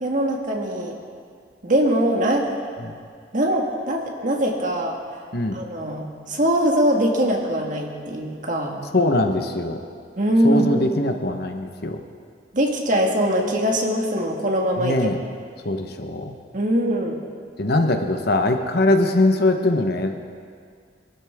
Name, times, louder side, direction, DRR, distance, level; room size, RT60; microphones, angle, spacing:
voice 1, 0.0-1.0 1.6-2.5 3.3-5.0 5.5-8.8 10.2-10.9 12.5-15.1 16.5-17.2, equal, 45° right, 1 dB, 1.7 m, -22 dB
voice 2, 8.9-9.8 10.4-12.0 14.8-15.2 15.6-16.3 17.6-20.1, left 2 dB, 55° left, 5 dB, 1.0 m, -21 dB
23.0 x 12.5 x 3.6 m, 2.1 s
head